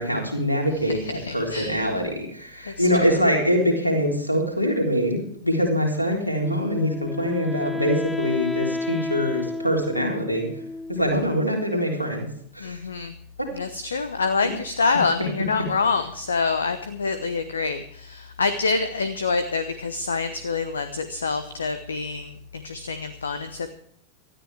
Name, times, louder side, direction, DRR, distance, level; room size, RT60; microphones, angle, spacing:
voice 1, 0.0-10.5 10.9-12.3 12.5-12.8 13.4-13.5 13.8-13.9 14.4-14.5, equal, 85° left, 1 dB, 3.7 m, -24 dB
voice 2, 0.7-1.9 2.7-3.2 10.9-11.2 12.6-13.2 13.5-23.7, left 4 dB, 70° left, 11 dB, 1.0 m, -27 dB
Wind instrument woodwind instrument, 6.4-11.5, left 2 dB, 5° left, 1.2 m, -31 dB
19.0 x 13.5 x 3.5 m, 0.67 s
figure-of-eight pair, 90°, 0 cm